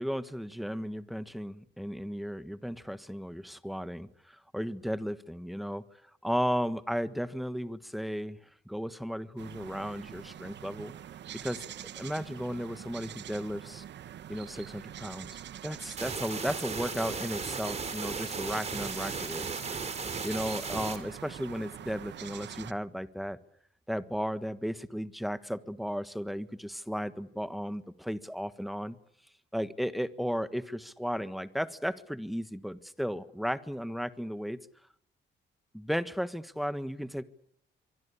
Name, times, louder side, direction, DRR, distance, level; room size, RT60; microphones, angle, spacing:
voice 1, 0.0-5.8 6.2-10.9 11.4-11.6 12.0-13.8 14.3-19.5 20.2-23.4 23.9-29.0 29.5-34.6 35.7-37.2, equal, ahead, 12 dB, 1.5 m, -35 dB
sound 1, 9.4-22.7, right 10 dB, 70° right, 1.1 m, -45 dB
sound 2, 16.0-21.0, right 4 dB, 35° right, 4.0 m, -36 dB
25.0 x 23.5 x 8.6 m, 0.72 s
cardioid pair, 115°, 19 cm